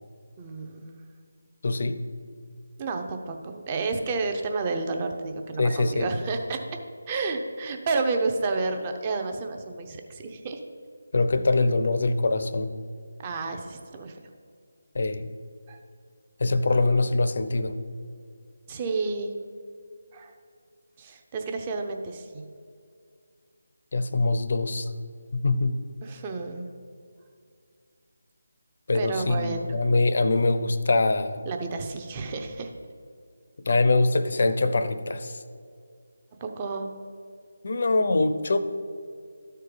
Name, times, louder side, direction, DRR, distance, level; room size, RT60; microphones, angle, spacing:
voice 1, 0.4-1.0 2.8-6.6 7.1-10.6 13.2-14.2 15.7-15.8 18.7-19.3 20.1-20.3 21.0-22.4 26.0-26.7 28.9-29.7 31.5-32.7 36.4-36.9, right 3 dB, 25° right, 4 dB, 0.7 m, -30 dB
voice 2, 1.6-2.0 5.6-6.1 11.1-12.7 14.9-15.3 16.4-17.8 23.9-24.9 25.3-25.8 28.9-31.4 33.7-35.4 37.6-38.6, left 2 dB, 55° left, 11 dB, 0.6 m, -23 dB
12.5 x 4.5 x 5.2 m, 2.3 s
figure-of-eight pair, 160°, 0 cm